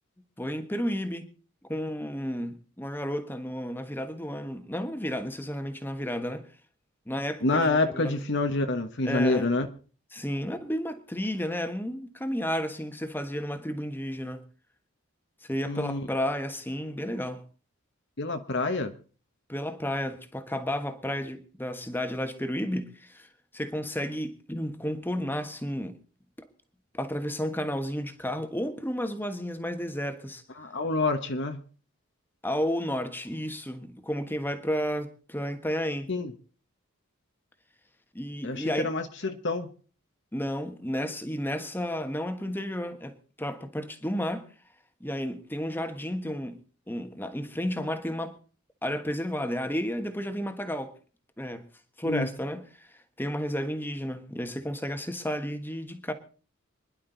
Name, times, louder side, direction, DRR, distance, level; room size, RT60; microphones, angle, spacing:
voice 1, 0.4-1.3 1.7-6.5 7.1-8.2 9.0-9.5 10.1-14.4 15.4-17.4 19.5-26.0 26.9-30.4 32.4-36.1 38.1-38.9 40.3-44.5 45.0-46.6 46.9-48.4 48.8-50.9 51.4-51.7 52.0-56.1, equal, 10° left, 1.4 m, -32 dB
voice 2, 7.4-9.7 15.7-16.1 18.2-18.9 30.6-31.6 36.1-36.3 38.4-39.7 52.0-52.3, left 2 dB, 55° left, 1.2 m, -27 dB
25.5 x 11.0 x 4.0 m
head